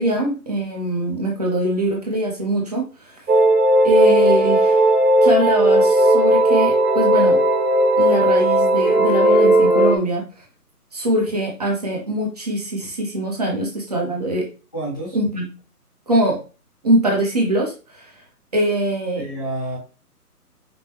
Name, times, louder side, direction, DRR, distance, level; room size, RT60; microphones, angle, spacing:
voice 1, 0.0-3.2 3.8-4.9 5.2-7.4 8.0-10.2 10.9-14.5 15.1-15.4 16.1-16.4 16.8-18.1 18.5-19.3, right 1 dB, 25° right, -1 dB, 0.7 m, -22 dB
sound 1, 3.3-10.0, right 1 dB, 80° right, 1.6 m, -15 dB
voice 2, 14.7-15.2 19.2-19.8, right 1 dB, 15° left, -8 dB, 0.6 m, -28 dB
5.2 x 2.1 x 3.0 m, 0.33 s
figure-of-eight pair, 150°, 46 cm